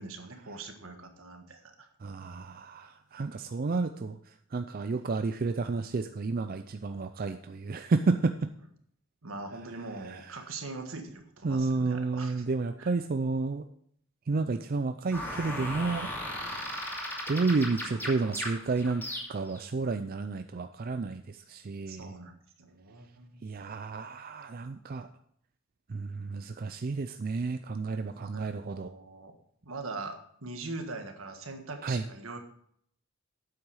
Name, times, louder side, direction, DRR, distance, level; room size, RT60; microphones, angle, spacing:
voice 1, 0.0-1.9 9.2-12.5 12.8-12.9 21.9-23.4 28.1-29.4 29.6-32.4, right 3 dB, 80° right, 5 dB, 1.5 m, -42 dB
voice 2, 2.0-8.5 10.0-10.4 11.4-13.6 14.3-16.1 17.3-19.0 19.3-22.1 23.4-25.1 25.9-28.9 31.8-32.1, right 3 dB, 45° right, 8 dB, 0.4 m, -31 dB
sound 1, 15.1-19.6, left 1 dB, 10° left, 2.5 m, -36 dB
9.3 x 7.8 x 4.8 m, 0.65 s
head